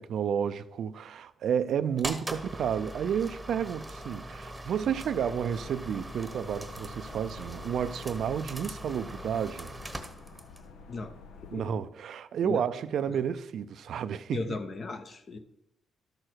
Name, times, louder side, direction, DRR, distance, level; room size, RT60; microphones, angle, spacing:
voice 1, 0.0-9.7 11.5-14.4, right 8 dB, 65° right, 0.5 m, -31 dB
sound 1, 2.0-10.7, right 1 dB, 10° right, 1.1 m, -41 dB
sound 2, 4.9-11.7, left 5 dB, 80° left, 0.9 m, -50 dB
voice 2, 11.4-11.8 12.4-12.6 13.1-13.2 14.3-15.4, left 3 dB, 45° left, 1.0 m, -36 dB
12.0 x 6.4 x 4.6 m
cardioid pair, 90°, 0 cm